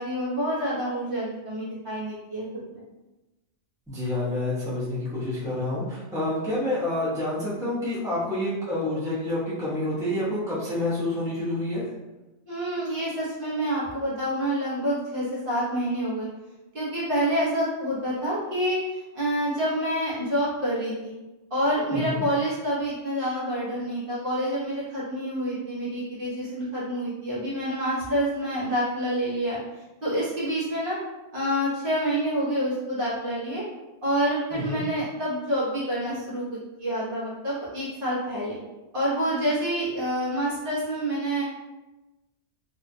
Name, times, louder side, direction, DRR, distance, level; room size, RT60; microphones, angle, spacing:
voice 1, 0.0-2.8 12.5-16.3 16.7-18.8 19.1-21.1 21.5-29.6 30.0-31.0 31.3-33.6 34.0-36.4 36.8-38.6 38.9-41.4, equal, 50° right, -9 dB, 1.0 m, -27 dB
voice 2, 3.9-11.9 21.9-22.2 34.5-34.8, left 1 dB, 5° right, -10 dB, 0.7 m, -28 dB
2.8 x 2.3 x 2.6 m, 1.1 s
omnidirectional pair, 1.2 m